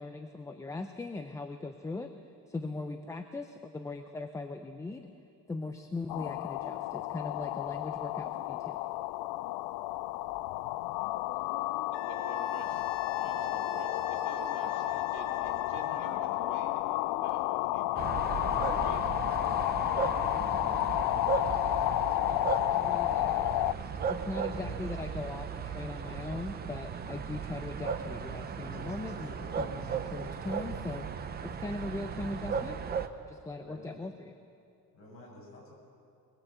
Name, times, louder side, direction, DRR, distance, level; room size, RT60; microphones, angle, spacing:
voice 1, 0.0-2.1 2.5-5.1 5.5-8.8 22.2-32.8 33.1-34.4, left 3 dB, 10° left, 6 dB, 0.5 m, -40 dB
sound 1, 6.1-23.7, left 17 dB, 90° left, 0.6 m, -31 dB
Wind instrument woodwind instrument, 11.9-16.3, left 6 dB, 65° left, 1.2 m, -40 dB
voice 2, 11.9-18.2 18.5-19.3, right 4 dB, 60° right, 2 dB, 3.5 m, -49 dB
sound 2, 18.0-33.1, right 6 dB, 25° right, 0.8 m, -36 dB
voice 3, 20.3-21.0 24.5-25.0 28.0-30.0 30.3-30.4 33.6-34.0 34.9-35.8, equal, 35° left, -3 dB, 7.1 m, -50 dB
22.0 x 22.0 x 8.0 m, 2.5 s
cardioid pair, 180°, 37 cm